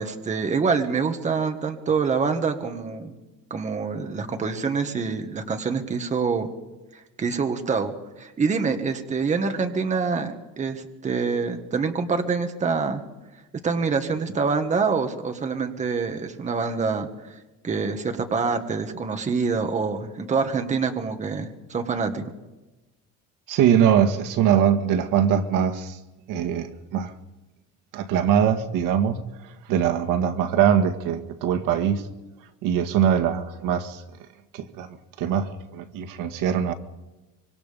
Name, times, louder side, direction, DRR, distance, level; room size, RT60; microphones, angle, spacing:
voice 1, 0.0-3.1 3.5-6.5 6.9-13.0 13.6-17.4 17.6-22.2, right 5 dB, 20° right, 1.7 m, -26 dB
voice 2, 23.5-26.0 26.3-27.1 27.9-32.0 32.6-34.0 34.5-34.9 35.2-36.7, right 8 dB, 75° right, 1.9 m, -22 dB
25.5 x 25.0 x 5.3 m
cardioid pair, 170°, 33 cm